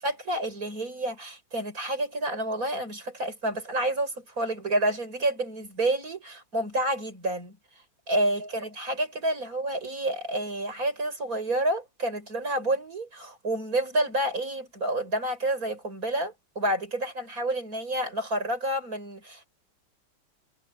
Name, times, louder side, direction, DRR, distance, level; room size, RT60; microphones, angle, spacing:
voice 1, 0.0-7.6 8.1-19.5, right 1 dB, 45° right, 7.4 m, -29 dB
omnidirectional pair, 2.2 m